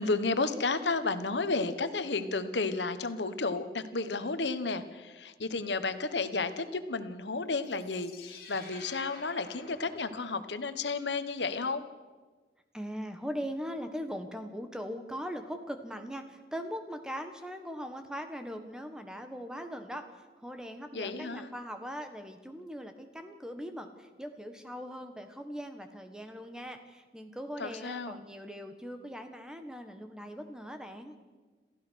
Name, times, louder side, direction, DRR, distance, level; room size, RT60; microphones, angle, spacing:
voice 1, 0.0-11.9 20.9-21.5 27.6-28.2, left 3 dB, 90° left, 11 dB, 1.3 m, -32 dB
sound 1, 7.6-10.8, left 3 dB, 55° left, 4.1 m, -50 dB
voice 2, 12.7-20.0 20.4-31.2, equal, 5° right, 7 dB, 1.4 m, -40 dB
27.5 x 15.0 x 6.4 m, 1.4 s
head